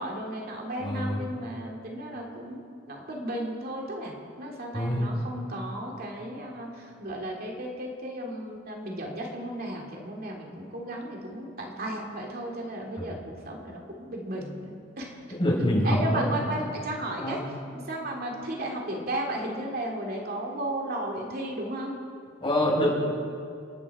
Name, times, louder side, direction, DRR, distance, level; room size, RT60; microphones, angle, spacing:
voice 1, 0.0-2.6 2.9-13.2 13.5-15.2 15.8-17.4 17.7-22.0, right 1 dB, 50° right, -1 dB, 2.5 m, -34 dB
voice 2, 0.8-1.2 4.7-5.1 13.0-13.1 15.3-16.3 17.2-17.3 22.4-22.9, equal, 25° left, -4 dB, 5.2 m, -25 dB
30.0 x 10.0 x 4.8 m, 2.3 s
head